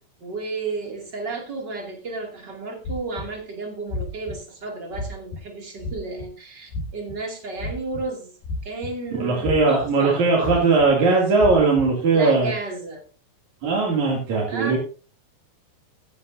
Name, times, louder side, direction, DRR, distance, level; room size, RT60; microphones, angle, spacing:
voice 1, 0.2-8.3 8.6-10.2 12.1-13.0 14.5-14.8, right 3 dB, 30° right, 1 dB, 2.4 m, -32 dB
sound 1, 2.9-3.3 3.9-4.3 4.9-5.4 5.8-6.2 6.7-7.1 7.6-8.0 8.4-9.1 9.4-9.9 10.4-10.9 11.4-11.8, left 2 dB, 65° left, 4.0 m, -30 dB
voice 2, 9.1-12.5 13.6-14.8, right 3 dB, 50° right, -3 dB, 3.5 m, -19 dB
15.5 x 11.0 x 2.7 m, 0.36 s
omnidirectional pair, 4.9 m